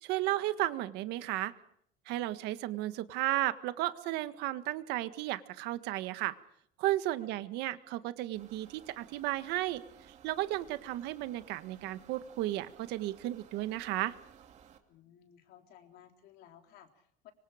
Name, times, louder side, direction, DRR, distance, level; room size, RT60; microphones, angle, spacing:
voice 1, 0.0-1.5 2.1-6.3 6.8-9.8 10.2-14.1, right 15 dB, 65° right, 11 dB, 1.6 m, -34 dB
sound 1, 8.4-14.8, right 8 dB, 40° right, 2.7 m, -58 dB
voice 2, 14.9-17.3, left 10 dB, 60° left, 4 dB, 3.9 m, -58 dB
25.5 x 25.5 x 5.1 m, 0.68 s
cardioid pair, 160°, 18 cm